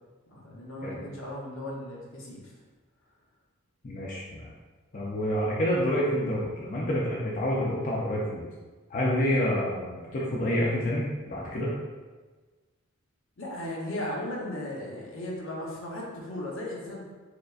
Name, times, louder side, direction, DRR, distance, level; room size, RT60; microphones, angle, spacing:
voice 1, 0.3-2.5 13.4-17.0, left 1 dB, 75° left, -4 dB, 0.9 m, -36 dB
voice 2, 3.8-4.5 4.9-8.4 8.9-11.7, equal, 40° left, -5 dB, 0.5 m, -28 dB
4.8 x 2.1 x 2.4 m, 1.3 s
head